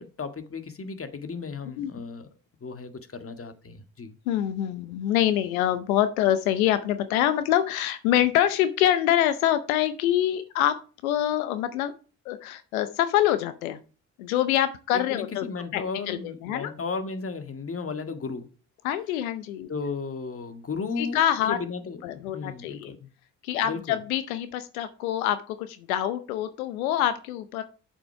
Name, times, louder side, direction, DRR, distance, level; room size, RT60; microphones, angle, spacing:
voice 1, 0.0-2.3 2.6-4.2 14.9-18.5 19.7-23.1 23.6-24.0, left 4 dB, 35° left, 1.9 m, -35 dB
voice 2, 4.3-10.8 11.0-11.9 12.3-13.8 14.2-15.5 15.7-16.7 18.8-19.7 21.0-21.6 22.0-22.9 23.4-27.6, left 12 dB, 90° left, 0.8 m, -25 dB
8.5 x 7.3 x 4.7 m
hypercardioid pair, 55°, 41 cm